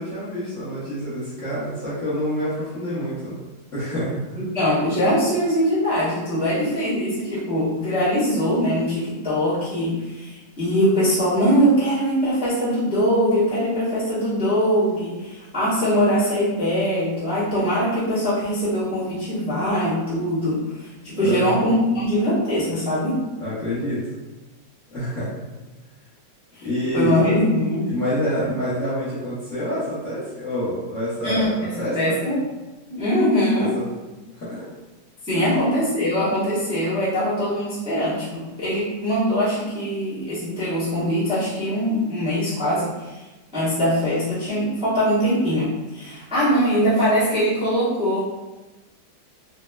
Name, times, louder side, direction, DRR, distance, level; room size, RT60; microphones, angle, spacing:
voice 1, 0.0-3.4 3.7-4.4 21.2-21.6 23.4-24.1 24.9-25.3 26.6-27.3 27.8-32.2 33.5-33.8 34.3-34.7 35.4-35.6, equal, 55° left, -11 dB, 1.0 m, -27 dB
voice 2, 4.3-23.2 26.6-26.7 26.9-27.9 31.2-32.4 32.9-33.8 35.2-43.2 43.5-48.2, equal, 5° right, -12 dB, 0.5 m, -22 dB
4.1 x 2.0 x 2.2 m, 1.1 s
omnidirectional pair, 2.2 m